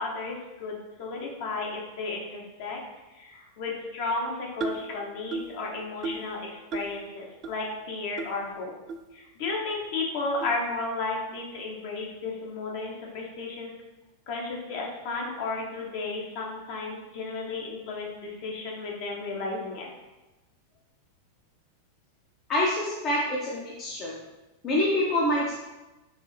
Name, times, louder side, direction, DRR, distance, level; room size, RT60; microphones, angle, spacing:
voice 1, 0.0-2.8 3.1-8.7 9.1-13.7 14.3-19.9, left 3 dB, 50° left, -1 dB, 1.0 m, -33 dB
sound 1, 4.6-4.9 5.3-5.6 6.0-6.3 6.7-7.0 7.4-7.5 8.2-8.3 8.9-9.0 9.7-9.8 10.4-10.6, right 3 dB, 30° right, 0.3 m, -34 dB
voice 2, 22.5-24.2 24.6-25.6, left 1 dB, 30° left, -4 dB, 0.7 m, -26 dB
5.2 x 2.7 x 3.2 m, 1.1 s
figure-of-eight pair, 90°, 0 cm